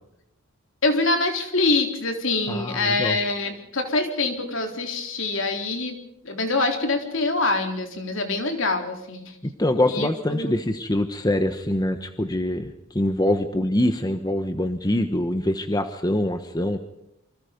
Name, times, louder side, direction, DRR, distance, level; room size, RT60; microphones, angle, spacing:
voice 1, 0.8-6.0 6.2-9.3 9.9-10.5, left 3 dB, 60° left, 4 dB, 3.8 m, -25 dB
voice 2, 2.5-3.2 9.4-16.8, left 1 dB, 20° left, 8 dB, 1.2 m, -24 dB
27.5 x 25.0 x 5.3 m, 0.79 s
head